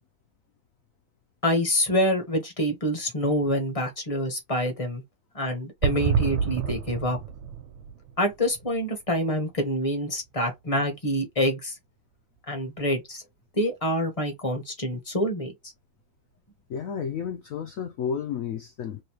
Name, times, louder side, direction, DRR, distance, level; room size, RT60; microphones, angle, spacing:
voice 1, 1.4-5.0 5.3-7.2 8.2-11.8 12.5-13.2 13.6-15.5, equal, 25° left, 0.7 m, -26 dB
sound 1, 5.8-9.6 9.9-10.0 10.1-10.2, right 7 dB, 90° right, 1.4 m, -29 dB
voice 2, 16.7-19.0, left 7 dB, 85° left, 0.7 m, -32 dB
3.1 x 3.0 x 3.0 m
omnidirectional pair, 2.1 m